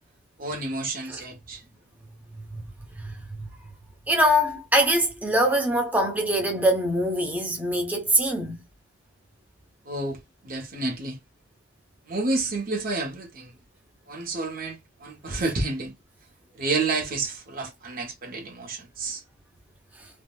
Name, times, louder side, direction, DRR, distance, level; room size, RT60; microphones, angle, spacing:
voice 1, 0.4-1.6 9.9-10.2 10.4-11.2 12.1-13.5 14.1-15.9 16.6-19.2, right 3 dB, 45° right, 0.7 m, -30 dB
voice 2, 4.1-8.6, equal, 10° right, 0.8 m, -23 dB
3.5 x 2.0 x 2.2 m
head